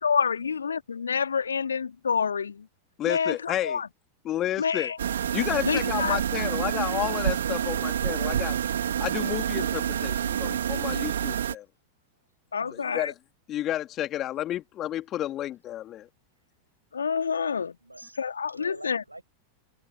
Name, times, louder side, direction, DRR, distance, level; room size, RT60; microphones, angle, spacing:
voice 1, 0.0-2.7 3.0-3.9 4.6-5.0 5.6-6.2 12.5-13.1 16.9-17.8 18.2-19.0, left 6 dB, 70° left, 3.4 m, -28 dB
voice 2, 3.0-3.8 4.2-4.9 5.3-8.6 9.0-11.7 12.7-13.1 13.5-16.1, left 13 dB, 30° left, 2.9 m, -31 dB
sound 1, 5.0-11.5, right 9 dB, 65° right, 2.9 m, -28 dB
voice 3, 12.6-13.1 17.8-18.2 18.5-19.2, right 1 dB, 85° right, 7.4 m, -46 dB
figure-of-eight pair, 90°, 0 cm